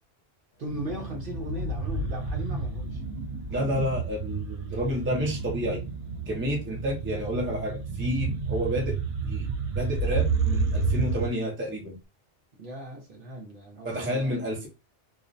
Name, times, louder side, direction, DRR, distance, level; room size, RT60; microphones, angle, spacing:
Organ, 0.5-10.9, right 4 dB, 85° left, 0.9 m, -41 dB
voice 1, 0.6-3.0 4.7-5.0 12.6-14.7, equal, 55° right, 0.7 m, -38 dB
sound 1, 0.7-11.3, right 4 dB, 90° right, 0.9 m, -31 dB
voice 2, 3.5-5.8 6.3-9.0 9.2-12.0 13.8-14.7, equal, 15° right, 0.5 m, -30 dB
2.4 x 2.0 x 2.5 m
omnidirectional pair, 1.2 m